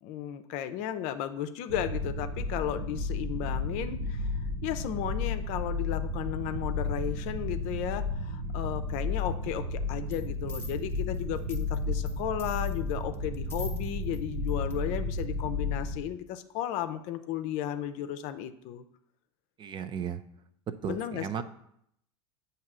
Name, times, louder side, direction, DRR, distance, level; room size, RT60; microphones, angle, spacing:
voice 1, 0.0-4.3 4.6-18.8 20.8-21.4, left 10 dB, 55° left, 10 dB, 0.5 m, -34 dB
sound 1, 1.7-16.0, left 2 dB, 90° right, 0.8 m, -33 dB
sound 2, 10.1-10.2 10.5-12.1 12.4-14.2 14.5-14.7 15.2-15.3, left 2 dB, 15° left, 0.9 m, -45 dB
voice 2, 19.6-20.2 20.8-21.4, right 8 dB, 30° right, 11 dB, 0.4 m, -35 dB
7.2 x 2.9 x 6.0 m, 0.74 s
hypercardioid pair, 90°, 14 cm